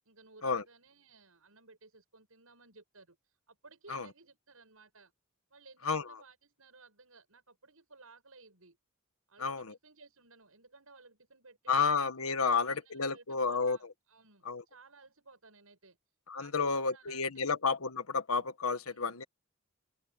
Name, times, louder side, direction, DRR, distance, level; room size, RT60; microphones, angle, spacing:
voice 1, 0.1-5.1 5.5-8.8 9.3-12.0 12.4-16.0 16.4-17.5 18.8-19.1, right 3 dB, 85° right, 7.8 m, -58 dB
voice 2, 9.4-9.7 11.7-13.8 14.4-14.6 16.3-19.2, left 5 dB, 90° left, 1.5 m, -31 dB
open air
head